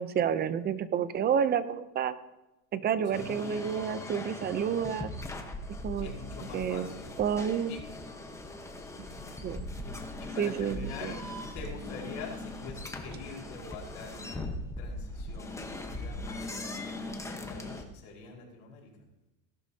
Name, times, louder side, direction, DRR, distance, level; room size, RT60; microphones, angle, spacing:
voice 1, 0.0-2.2 2.7-5.1 5.8-6.1 6.5-6.9 7.2-7.7 9.4-9.7 10.4-11.1, right 8 dB, 25° right, 14 dB, 0.6 m, -29 dB
voice 2, 3.0-3.6 5.9-7.1 7.7-7.8 9.1-9.3 9.8-11.2 11.5-14.5 14.8-18.9, left 4 dB, 65° left, -2 dB, 4.9 m, -45 dB
sound 1, 3.1-17.8, left 2 dB, 10° left, 1.1 m, -40 dB
17.5 x 11.5 x 2.8 m, 0.99 s
supercardioid pair, 135°, 37 cm